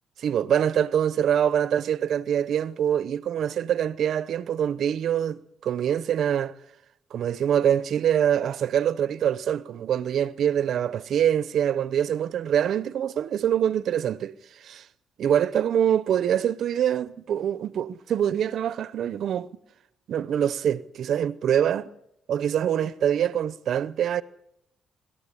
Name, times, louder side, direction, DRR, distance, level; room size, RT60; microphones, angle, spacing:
voice 1, 0.2-6.5 7.1-14.9 15.2-19.5 20.1-21.9 22.3-24.2, right 9 dB, 65° right, 0.8 m, -24 dB
25.5 x 13.0 x 9.9 m
cardioid pair, 90°, 0 cm